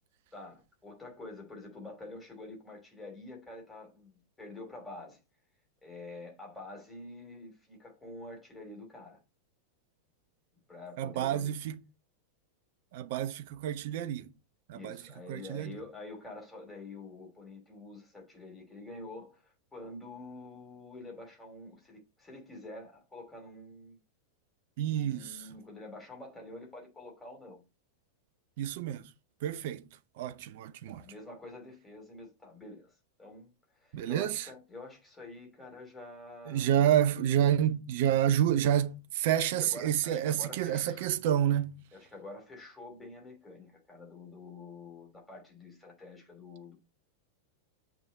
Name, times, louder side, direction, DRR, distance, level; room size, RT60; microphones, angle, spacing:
voice 1, 0.3-5.2 5.8-9.2 10.7-11.5 14.7-24.0 24.9-27.6 30.9-32.9 33.2-36.8 39.6-41.1 41.9-46.7, left 2 dB, 10° left, 3.0 m, -47 dB
voice 2, 11.0-11.8 12.9-14.3 14.7-15.0 15.3-15.7 24.8-25.4 28.6-29.0 29.4-29.8 30.2-31.0 33.9-34.5 36.5-41.8, right 10 dB, 50° right, 0.6 m, -29 dB
7.1 x 3.5 x 5.3 m
figure-of-eight pair, 90°, 0 cm